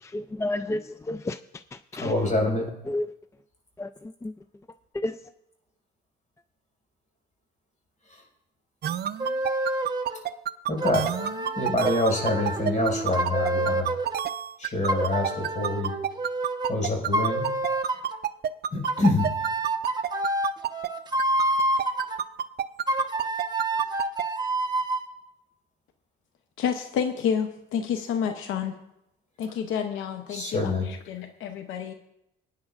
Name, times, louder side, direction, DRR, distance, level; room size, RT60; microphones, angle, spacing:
voice 1, 0.0-1.4 1.9-2.1 2.9-3.1 3.8-3.9 4.2-4.3 4.9-5.2, left 2 dB, 15° left, 12 dB, 0.3 m, -30 dB
voice 2, 2.0-2.7 10.7-11.1 11.6-13.9 14.6-15.9 16.7-17.5 18.7-19.3 30.3-30.9, left 2 dB, 40° left, 0 dB, 5.4 m, -26 dB
sound 1, 8.8-20.9 21.2-24.2, right 10 dB, 55° right, 0.5 m, -28 dB
sound 2, 9.2-10.2 10.8-14.2 14.9-16.8 17.1-18.2 18.9-22.2 22.9-25.1, right 2 dB, 20° right, 1.1 m, -28 dB
voice 3, 26.6-28.8 29.4-31.9, left 7 dB, 85° left, 7 dB, 0.8 m, -29 dB
21.0 x 9.7 x 2.5 m, 0.84 s
cardioid pair, 90°, 20 cm